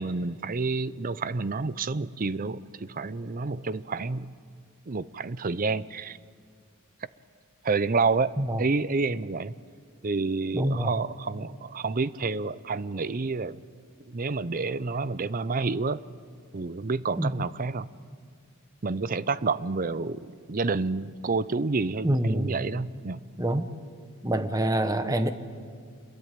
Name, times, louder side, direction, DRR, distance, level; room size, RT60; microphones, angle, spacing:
voice 1, 0.0-4.3 4.9-6.2 7.6-9.5 10.0-13.6 14.1-16.0 16.5-17.9 18.8-23.2, right 4 dB, 40° right, 17 dB, 0.6 m, -29 dB
voice 2, 10.5-10.9 17.2-17.4 22.0-22.6 23.4-23.7 24.2-25.3, right 1 dB, 15° right, 9 dB, 1.1 m, -26 dB
26.5 x 22.0 x 9.1 m, 2.1 s
head